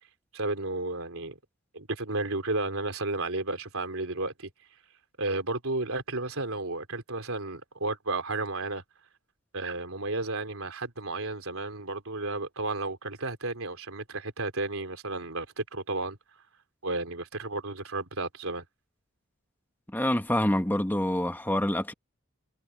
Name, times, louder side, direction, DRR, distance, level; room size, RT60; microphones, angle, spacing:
voice 1, 0.3-1.4 1.7-4.5 5.2-8.8 9.5-16.2 16.8-18.6, right 2 dB, 75° right, 3.9 m, -32 dB
voice 2, 19.9-21.9, left 1 dB, 10° left, 1.3 m, -26 dB
head